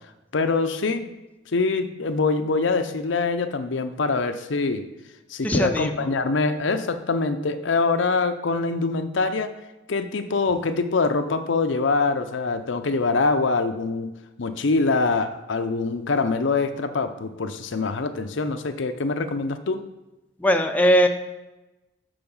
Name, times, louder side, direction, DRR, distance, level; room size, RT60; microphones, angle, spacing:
voice 1, 0.3-1.1 1.5-4.9 5.3-9.5 9.9-14.1 14.4-19.9, left 3 dB, 75° left, 8 dB, 0.6 m, -24 dB
voice 2, 5.4-5.9 20.4-21.1, equal, 10° left, 5 dB, 0.5 m, -19 dB
6.8 x 6.0 x 5.4 m, 1.0 s
head